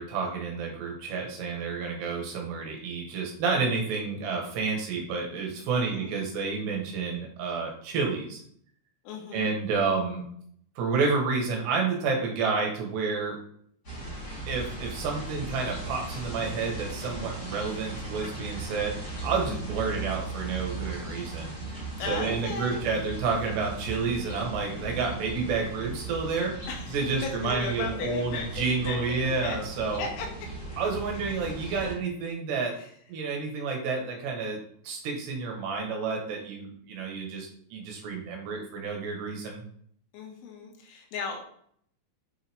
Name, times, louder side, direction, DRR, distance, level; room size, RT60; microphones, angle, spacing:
voice 1, 0.0-8.4 9.3-10.3 10.8-13.4 14.5-26.5 26.9-30.0 30.8-32.7 33.1-34.6 34.8-39.6, right 4 dB, 70° right, 1 dB, 3.2 m, -30 dB
voice 2, 5.8-6.2 9.1-9.6 19.5-19.7 22.0-22.8 26.7-29.6 30.0-30.3 32.8-32.9 40.1-41.4, left 5 dB, 85° left, 2 dB, 3.9 m, -36 dB
sound 1, 13.8-31.9, right 2 dB, 20° left, 2.1 m, -38 dB
7.9 x 5.5 x 3.5 m, 0.64 s
omnidirectional pair, 5.5 m